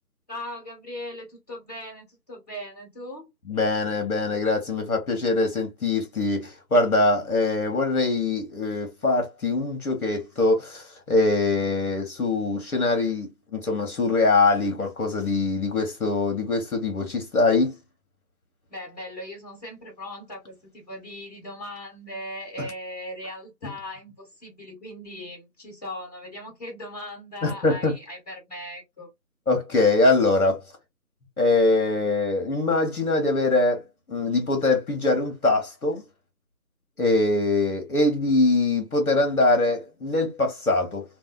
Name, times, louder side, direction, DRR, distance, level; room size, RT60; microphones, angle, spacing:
voice 1, 0.3-3.3 18.7-29.1, left 1 dB, 25° left, 1.2 m, -39 dB
voice 2, 3.5-17.7 27.4-27.9 29.5-30.6 31.4-36.0 37.0-41.0, left 2 dB, 60° left, 1.0 m, -23 dB
2.6 x 2.2 x 2.2 m
figure-of-eight pair, 170°, 49 cm